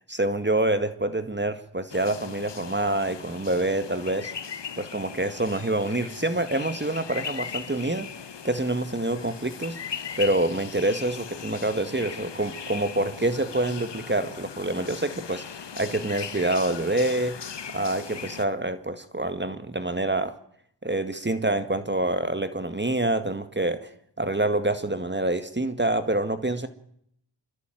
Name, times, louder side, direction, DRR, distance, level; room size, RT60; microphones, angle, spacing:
voice 1, 0.0-4.3 4.8-8.1 8.4-9.8 10.2-17.4 17.7-20.3 20.8-23.9 24.2-26.7, right 2 dB, 25° right, 10 dB, 1.9 m, -26 dB
sound 1, 1.9-18.4, left 7 dB, 75° left, 1.4 m, -39 dB
26.5 x 23.5 x 9.2 m, 0.72 s
cardioid pair, 50°, 43 cm